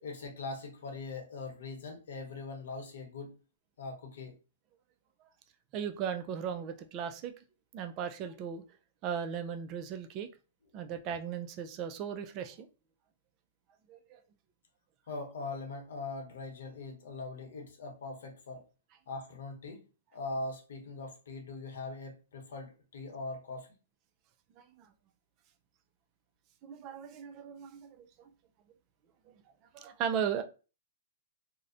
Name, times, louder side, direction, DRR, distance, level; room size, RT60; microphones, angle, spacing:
voice 1, 0.0-3.3 3.8-4.4 15.1-18.7 19.1-23.7, left 3 dB, 70° left, 2 dB, 0.9 m, -41 dB
voice 2, 5.7-7.3 7.7-8.6 9.0-10.3 10.7-12.7 13.9-14.2 24.6-24.7 26.6-28.0 29.7-30.4, right 8 dB, 35° right, 8 dB, 0.3 m, -36 dB
2.5 x 2.0 x 2.5 m, 0.33 s
hypercardioid pair, 140°, 0 cm